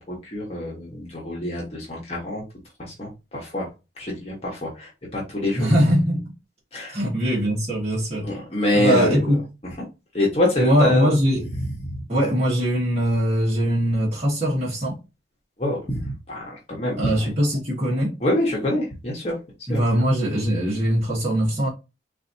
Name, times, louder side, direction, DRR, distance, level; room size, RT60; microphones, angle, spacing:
voice 1, 0.0-2.4 2.8-3.7 4.0-5.7 6.7-7.0 8.2-9.3 9.8-9.9 10.1-11.1 11.6-12.0 15.6-17.3 18.2-19.4 19.7-19.8, left 1 dB, 35° left, 1.0 m, -25 dB
voice 2, 5.5-6.3 6.9-8.3 8.7-9.4 10.6-11.4 12.1-15.0 17.0-18.1 19.7-21.7, equal, 35° right, 1.3 m, -21 dB
4.0 x 2.6 x 2.6 m
head